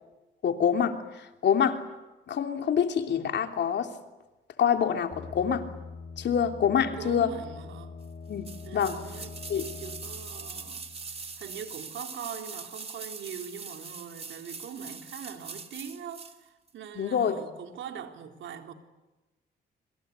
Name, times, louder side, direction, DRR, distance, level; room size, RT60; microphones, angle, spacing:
voice 1, 0.4-1.8 2.3-3.9 4.6-5.7 6.2-7.3 8.3-9.0 9.5-9.7 16.9-17.4, left 8 dB, 60° left, 3.2 m, -26 dB
sound 1, 5.1-11.7, left 4 dB, 45° left, 3.7 m, -44 dB
voice 2, 6.9-7.9 8.6-10.8 11.4-18.7, right 8 dB, 75° right, 3.7 m, -42 dB
sound 2, 8.4-16.4 16.7-16.8, right 4 dB, 30° right, 2.7 m, -42 dB
26.5 x 25.5 x 8.3 m
cardioid pair, 90°, 20 cm